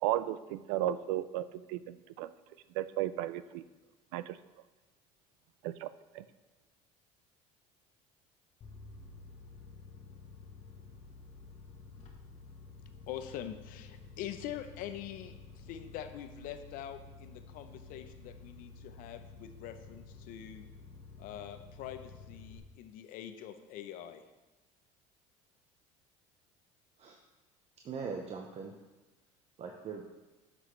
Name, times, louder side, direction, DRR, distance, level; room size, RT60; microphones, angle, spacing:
voice 1, 0.0-2.3 2.7-3.6 4.1-4.4 5.6-5.9 6.1-6.2, right 13 dB, 80° right, 14 dB, 0.4 m, -34 dB
sound 1, 8.6-22.6, left 4 dB, 45° left, 1.3 m, -51 dB
voice 2, 13.1-20.6 21.2-24.2, left 10 dB, 65° left, 9 dB, 0.7 m, -44 dB
voice 3, 27.8-28.8 29.6-30.0, right 5 dB, 45° right, 2 dB, 0.8 m, -40 dB
9.3 x 6.2 x 3.2 m, 1.2 s
supercardioid pair, 90°, 15 cm